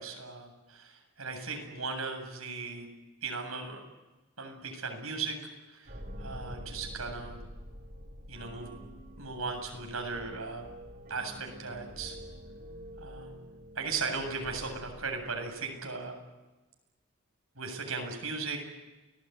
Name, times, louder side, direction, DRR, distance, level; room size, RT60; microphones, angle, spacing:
voice 1, 0.0-2.9 3.2-3.8 4.4-5.4 5.7-7.4 8.3-8.7 9.2-10.6 11.1-12.2 13.0-16.2 17.6-18.6, right 4 dB, 80° right, 3 dB, 7.9 m, -37 dB
sound 1, 5.8-15.5, equal, 45° right, 6.1 m, -47 dB
29.5 x 20.5 x 9.5 m, 1.1 s
head